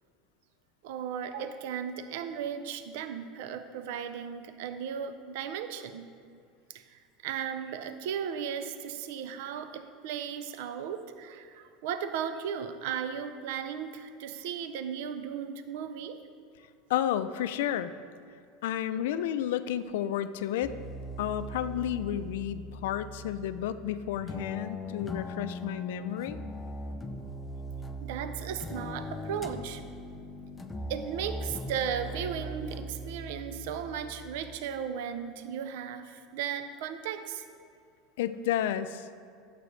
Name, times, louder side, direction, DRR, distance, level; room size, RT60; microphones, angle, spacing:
voice 1, 0.8-6.0 6.7-16.2 28.0-29.8 30.9-37.4, right 8 dB, 65° right, 9 dB, 0.4 m, -36 dB
voice 2, 16.9-17.9 18.6-20.7 21.2-26.4 38.2-39.1, left 11 dB, 85° left, 12 dB, 0.4 m, -31 dB
sound 1, 20.6-34.6, equal, 10° left, 0.4 m, -40 dB
12.0 x 7.7 x 3.2 m, 2.3 s
supercardioid pair, 180°, 0 cm